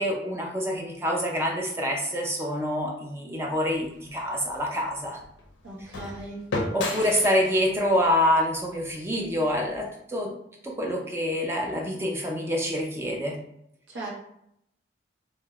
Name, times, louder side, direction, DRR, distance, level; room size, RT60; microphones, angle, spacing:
voice 1, 0.0-5.2 6.7-10.3 10.6-13.4, equal, 15° right, 0 dB, 0.4 m, -26 dB
sound 1, 3.7-9.9, left 2 dB, 65° left, 0.4 m, -36 dB
voice 2, 5.6-6.5 13.9-14.1, right 2 dB, 75° right, -4 dB, 0.6 m, -37 dB
2.9 x 2.0 x 2.3 m, 0.76 s
head